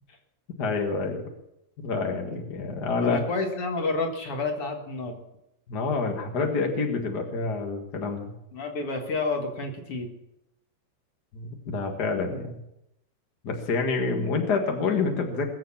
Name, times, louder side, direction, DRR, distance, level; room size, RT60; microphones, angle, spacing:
voice 1, 0.6-1.2 1.8-3.2 5.7-8.3 11.3-12.6 13.4-15.5, left 4 dB, 75° left, 3 dB, 0.9 m, -27 dB
voice 2, 3.0-5.2 8.5-10.1, left 3 dB, 50° left, 3 dB, 1.9 m, -29 dB
21.0 x 7.5 x 7.2 m, 0.85 s
omnidirectional pair, 4.8 m